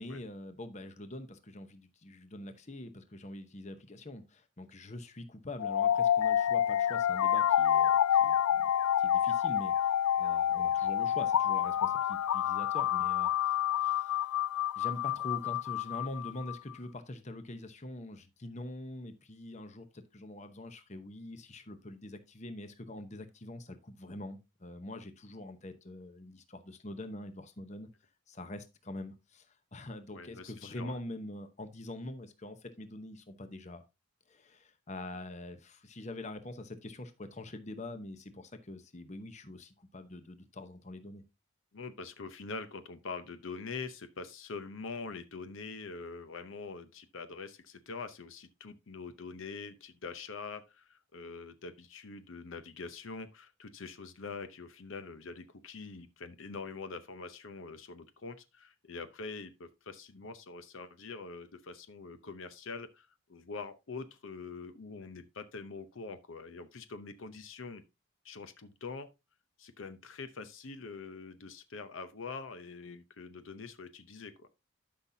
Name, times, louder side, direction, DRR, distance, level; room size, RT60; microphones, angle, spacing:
voice 1, 0.0-8.7 9.0-14.3 14.8-27.9 28.3-33.8 34.3-41.2, left 1 dB, 30° left, 0.8 m, -44 dB
sound 1, 5.6-16.5, left 10 dB, 90° left, 0.3 m, -28 dB
voice 2, 30.1-31.0 41.7-67.8 68.2-69.1 69.6-74.5, left 4 dB, 65° left, 0.7 m, -44 dB
12.0 x 5.8 x 2.7 m
head